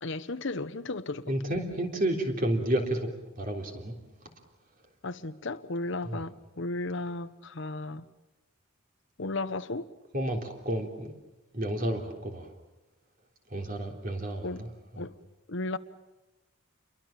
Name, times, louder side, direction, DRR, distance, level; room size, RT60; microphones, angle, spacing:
voice 1, 0.0-1.3 5.0-8.0 9.2-9.9 14.4-14.7 15.0-15.2 15.5-15.8, left 2 dB, 55° left, 0.9 m, -34 dB
voice 2, 1.3-3.1 3.4-3.9 6.1-6.2 10.1-11.1 11.5-12.5 13.5-14.7 14.9-15.0, right 1 dB, 40° right, 3.6 m, -31 dB
28.5 x 23.0 x 7.4 m
head